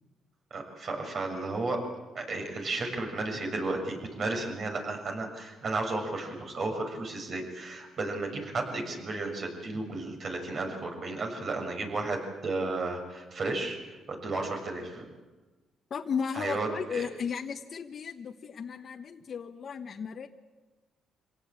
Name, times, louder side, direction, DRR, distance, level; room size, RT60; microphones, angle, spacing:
voice 1, 0.5-1.8 2.1-15.1 16.3-17.1, right 2 dB, 50° right, 3 dB, 6.7 m, -33 dB
voice 2, 15.9-20.3, left 6 dB, 50° left, 4 dB, 1.3 m, -35 dB
26.0 x 17.5 x 9.1 m, 1.2 s
cardioid pair, 90°, 0 cm